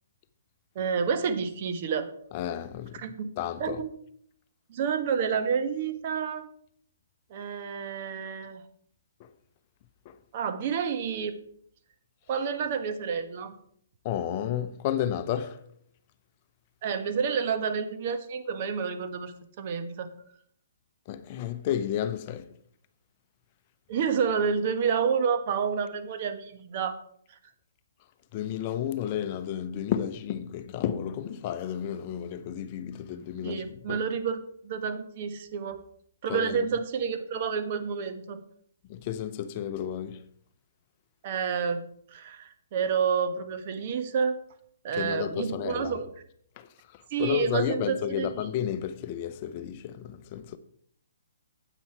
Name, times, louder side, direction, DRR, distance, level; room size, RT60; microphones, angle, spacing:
voice 1, 0.7-2.1 2.9-3.3 3.6-4.0 4.7-6.5 7.3-8.6 10.3-11.4 12.3-13.5 16.8-20.1 23.9-26.9 33.4-35.8 36.2-38.4 41.2-44.4 44.8-46.1 47.1-48.5, right 6 dB, 45° right, 1.3 m, -29 dB
voice 2, 2.3-3.0 3.4-3.8 10.1-10.2 14.0-15.6 21.1-22.5 28.3-34.0 36.3-36.6 38.9-40.2 44.9-45.9 46.6-46.7 47.2-50.6, left 10 dB, 35° left, 0.7 m, -32 dB
9.6 x 8.3 x 4.6 m
hypercardioid pair, 140°, 0 cm